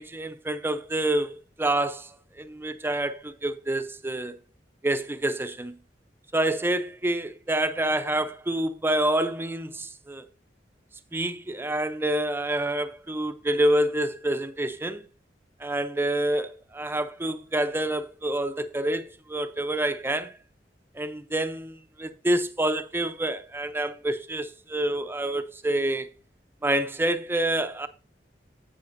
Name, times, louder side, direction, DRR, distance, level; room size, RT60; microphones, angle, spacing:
voice 1, 0.0-4.4 4.8-5.8 6.3-10.3 11.1-15.0 15.6-20.3 20.9-26.1 26.6-27.9, right 1 dB, 15° right, 0.5 m, -27 dB
10.5 x 7.9 x 2.6 m
head